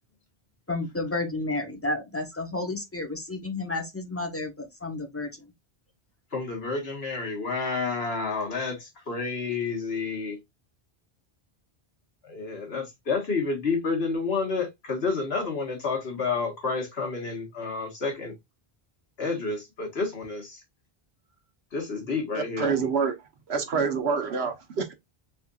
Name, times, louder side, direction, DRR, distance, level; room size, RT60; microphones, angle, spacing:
voice 1, 0.7-5.3, left 2 dB, 15° left, 1.0 m, -31 dB
voice 2, 6.3-10.4 12.2-18.3 19.2-20.6 21.7-22.7, left 4 dB, 80° left, 1.8 m, -30 dB
voice 3, 22.3-23.1 23.5-24.9, right 5 dB, 85° right, 1.2 m, -27 dB
4.4 x 3.8 x 2.4 m
omnidirectional pair, 1.0 m